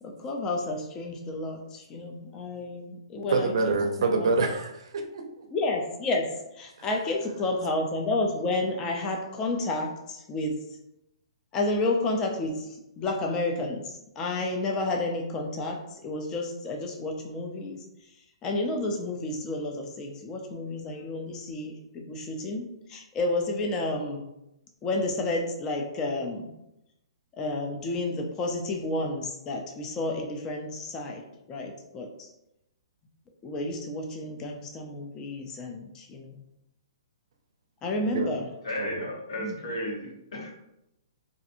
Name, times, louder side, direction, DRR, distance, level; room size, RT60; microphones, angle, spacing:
voice 1, 0.0-4.3 5.5-10.5 11.5-12.7 13.0-17.8 18.4-24.2 24.8-26.5 27.4-32.1 33.4-36.4 37.8-38.4 39.4-39.6, left 2 dB, 20° left, 1 dB, 0.4 m, -31 dB
voice 2, 3.3-5.5 6.8-6.9 38.0-38.3 38.8-39.1, right 3 dB, 65° right, 4 dB, 0.5 m, -27 dB
voice 3, 38.6-40.5, equal, 70° left, -2 dB, 0.9 m, -34 dB
2.5 x 2.5 x 2.5 m, 0.87 s
hypercardioid pair, 150°, 3 cm